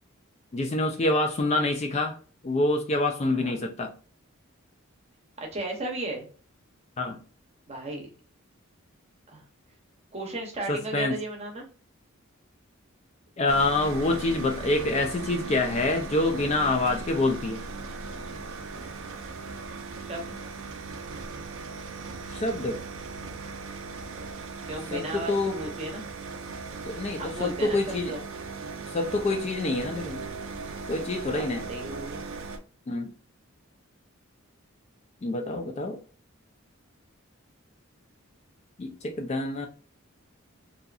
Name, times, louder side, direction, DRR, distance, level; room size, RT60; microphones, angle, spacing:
voice 1, 0.5-2.2 2.4-3.9 7.0-7.2 10.7-11.2 13.4-17.6 22.3-22.8 24.9-25.6 26.8-28.1 28.9-30.2 30.9-31.6 32.9-33.1 35.2-36.0 38.8-39.7, left 2 dB, 30° left, 0.3 m, -26 dB
voice 2, 5.4-6.2 7.7-8.1 9.3-9.4 10.1-11.7 20.0-20.4 24.6-26.1 27.2-28.2 31.3-32.2, right 2 dB, 30° right, 0.7 m, -35 dB
sound 1, 13.5-32.6, right 4 dB, 70° right, 0.4 m, -38 dB
2.6 x 2.4 x 2.3 m
head